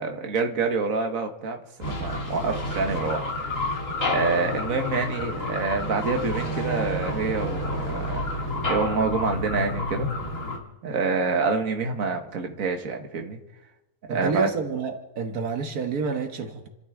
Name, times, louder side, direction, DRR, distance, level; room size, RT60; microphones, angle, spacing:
voice 1, 0.0-3.7 4.0-10.1 10.8-13.4 14.1-14.5, right 4 dB, 65° right, 4 dB, 1.8 m, -27 dB
sound 1, 1.8-10.6, left 1 dB, 60° left, 2.7 m, -29 dB
voice 2, 14.1-16.7, right 5 dB, 85° right, 5 dB, 1.8 m, -28 dB
29.5 x 12.5 x 3.7 m, 0.98 s
omnidirectional pair, 1.5 m